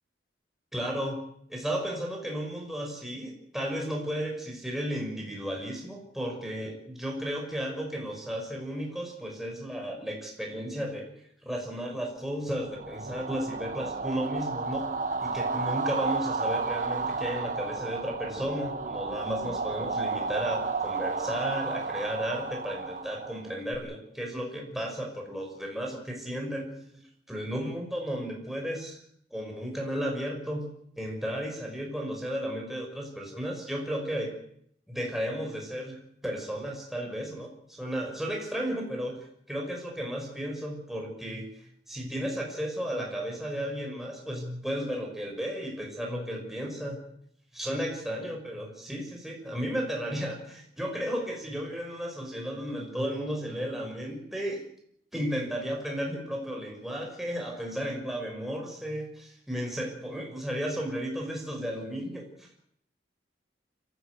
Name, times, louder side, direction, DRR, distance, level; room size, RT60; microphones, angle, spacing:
voice 1, 0.7-1.2 1.5-11.1 11.4-14.8 15.2-29.0 29.3-30.7 31.0-34.3 34.9-41.5 41.9-47.0 47.5-54.6 55.1-62.6, equal, ahead, 0 dB, 6.0 m, -34 dB
sound 1, 12.6-23.8, right 4 dB, 45° right, 1.8 m, -32 dB
25.5 x 15.0 x 8.4 m, 0.68 s
head